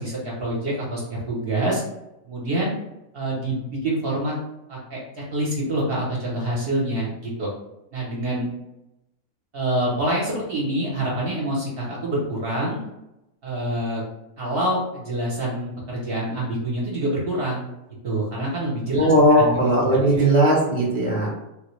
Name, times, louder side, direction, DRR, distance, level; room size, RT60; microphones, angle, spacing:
voice 1, 0.0-1.8 2.2-2.7 3.1-4.3 4.7-5.0 5.3-7.5 7.9-8.5 9.5-12.8 13.4-14.0 14.4-17.7 18.0-20.2, right 1 dB, 50° right, -4 dB, 0.8 m, -26 dB
voice 2, 18.9-21.3, right 1 dB, 10° left, -5 dB, 0.4 m, -18 dB
3.5 x 2.1 x 3.0 m, 0.90 s
omnidirectional pair, 1.6 m